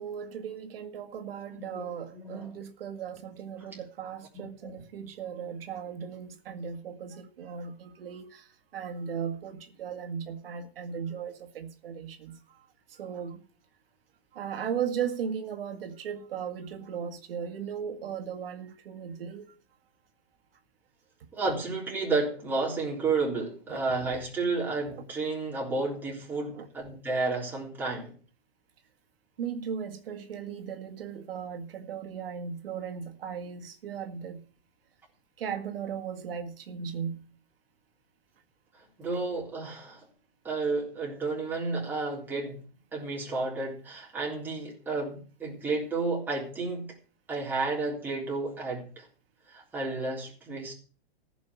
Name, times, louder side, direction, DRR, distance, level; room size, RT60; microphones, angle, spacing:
voice 1, 0.0-13.4 14.3-19.5 23.7-23.8 26.5-26.7 29.4-34.4 35.4-37.3, right 7 dB, 65° right, 2.0 m, -37 dB
voice 2, 1.5-2.5 4.3-4.7 21.3-28.1 39.0-40.0 40.4-42.6 42.9-46.9 47.3-49.0 49.5-50.7, right 3 dB, 5° right, 3.7 m, -31 dB
15.0 x 6.2 x 8.2 m
supercardioid pair, 175°, 31 cm